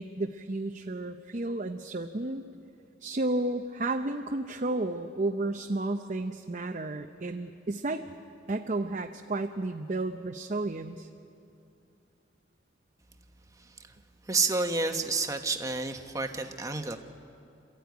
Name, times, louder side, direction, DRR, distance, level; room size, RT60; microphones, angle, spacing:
voice 1, 0.0-2.4 3.0-8.0 8.5-11.1, right 2 dB, 40° right, 4 dB, 0.7 m, -32 dB
voice 2, 14.3-17.0, right 3 dB, 20° right, 5 dB, 1.2 m, -29 dB
27.0 x 14.5 x 9.4 m, 2.6 s
head